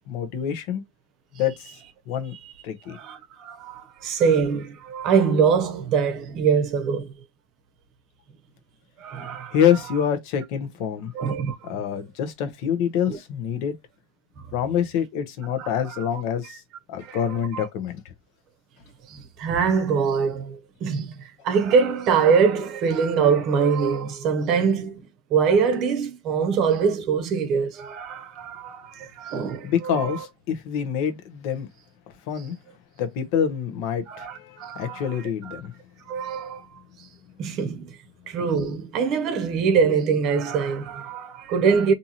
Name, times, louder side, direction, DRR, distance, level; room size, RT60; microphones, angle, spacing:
voice 1, 0.1-0.8 1.4-1.7 2.1-2.3 2.6-3.0 9.5-11.1 11.6-13.7 14.5-16.6 16.9-18.0 29.6-31.7 32.3-32.5 33.0-35.7, left 8 dB, 60° left, 0.8 m, -26 dB
voice 2, 2.9-7.1 9.0-9.6 11.1-11.7 13.1-13.2 15.6-15.9 17.0-17.7 19.1-21.2 21.4-25.0 25.3-30.2 34.1-35.6 36.1-36.6 37.4-38.0 38.3-41.9, right 6 dB, 50° right, 0.8 m, -23 dB
2.7 x 2.4 x 2.9 m
hypercardioid pair, 100°, 0 cm